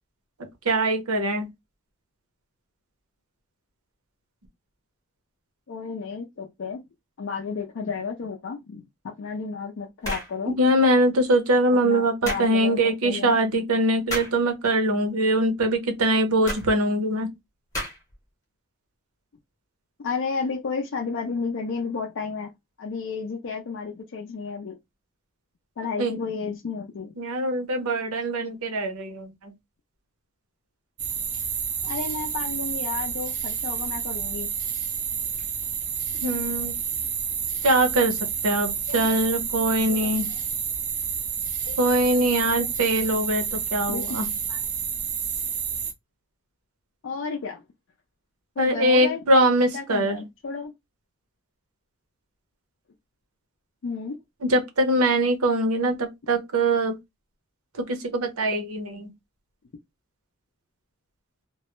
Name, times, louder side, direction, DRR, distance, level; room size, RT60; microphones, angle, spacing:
voice 1, 0.6-1.5 10.5-17.3 26.0-26.1 27.2-29.5 36.2-36.7 37.6-38.2 38.4-40.3 41.8-44.3 48.6-50.2 54.4-57.0 57.8-59.1, right 1 dB, 75° right, 0.7 m, -22 dB
voice 2, 5.7-6.8 7.2-10.6 11.8-13.4 20.0-22.5 22.8-24.8 25.8-27.1 31.8-34.5 38.9-39.1 39.8-40.0 41.6-41.8 42.2-42.7 43.9-44.0 44.5-44.6 47.0-47.6 48.6-49.2 49.7-50.7 53.8-54.2 56.7-56.8, left 5 dB, 55° left, 0.4 m, -32 dB
sound 1, 10.0-10.4 12.3-12.5 14.1-14.4 16.5-16.7 17.7-18.1, equal, 15° left, 0.8 m, -31 dB
sound 2, 31.0-45.9, right 7 dB, 35° right, 0.4 m, -29 dB
2.2 x 2.0 x 2.9 m
head